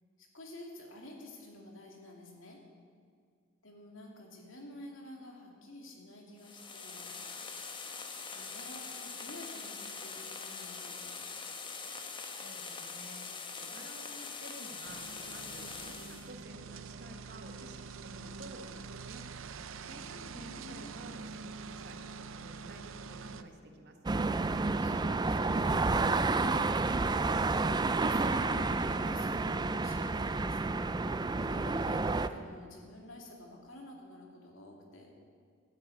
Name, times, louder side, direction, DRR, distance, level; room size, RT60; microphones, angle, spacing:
voice 1, 0.2-2.6 3.6-7.1 8.3-11.2 19.8-21.1 24.8-26.0 26.5-27.7 28.0-30.6 31.3-35.1, left 1 dB, 70° left, 1 dB, 2.7 m, -50 dB
sound 1, 6.4-16.3, left 5 dB, 25° left, 1.1 m, -43 dB
voice 2, 12.1-19.2 19.8-22.0 22.3-24.0, right 1 dB, 55° right, 4 dB, 1.5 m, -52 dB
sound 2, 14.8-23.4, right 5 dB, 75° right, 0.6 m, -45 dB
sound 3, 24.1-32.3, right 3 dB, 20° right, 0.4 m, -30 dB
12.5 x 10.5 x 8.5 m, 2.1 s
head